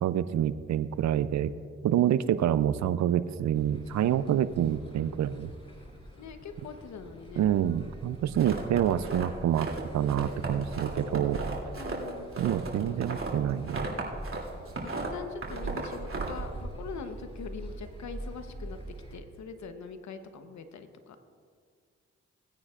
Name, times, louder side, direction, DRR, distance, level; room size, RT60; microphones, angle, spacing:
voice 1, 0.0-1.5 1.8-5.5 7.4-9.7 9.9-11.4 12.4-13.9, right 10 dB, 65° right, 14 dB, 0.5 m, -27 dB
sound 1, 3.5-19.2, right 1 dB, 20° left, 2.9 m, -46 dB
voice 2, 6.2-7.4 11.7-12.3 14.8-18.8 19.1-21.2, left 5 dB, 70° left, 8 dB, 1.1 m, -42 dB
sound 2, 8.3-9.8 10.1-14.4 14.7-16.6, right 3 dB, 45° right, 2.9 m, -35 dB
19.0 x 9.5 x 2.5 m, 2.1 s
supercardioid pair, 45°, 30 cm